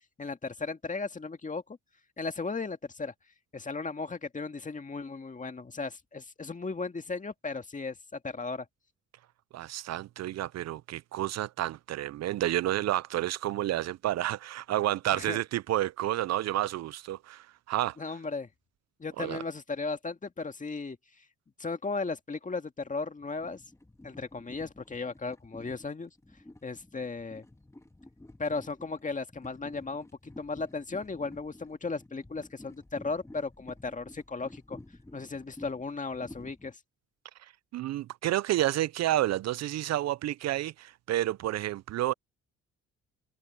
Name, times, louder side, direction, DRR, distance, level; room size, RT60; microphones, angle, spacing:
voice 1, 0.2-1.8 2.2-3.1 3.5-8.7 15.1-15.4 18.0-18.5 19.0-21.0 21.6-23.6 24.0-26.1 26.6-27.4 28.4-30.1 30.4-34.8 35.1-36.8, left 4 dB, 25° left, 2.0 m, -36 dB
voice 2, 9.5-18.0 19.2-19.4 37.7-42.1, right 14 dB, 60° right, 0.4 m, -30 dB
sound 1, 23.2-36.7, left 1 dB, 10° left, 1.7 m, -51 dB
cardioid pair, 90°, 30 cm